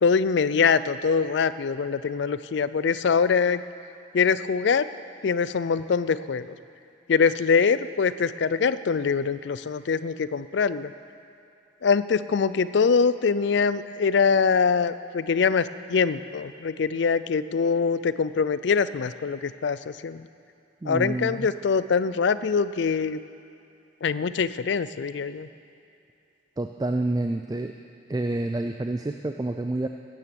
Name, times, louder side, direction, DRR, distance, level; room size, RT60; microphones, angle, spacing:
voice 1, 0.0-3.6 4.1-4.9 5.2-6.5 7.1-10.9 11.8-20.3 20.9-23.2 24.0-25.5, left 5 dB, 65° left, 15 dB, 0.4 m, -23 dB
voice 2, 20.8-21.5 26.6-27.8 28.1-29.9, right 2 dB, 20° right, 6 dB, 0.3 m, -28 dB
13.0 x 9.3 x 7.0 m, 2.6 s
head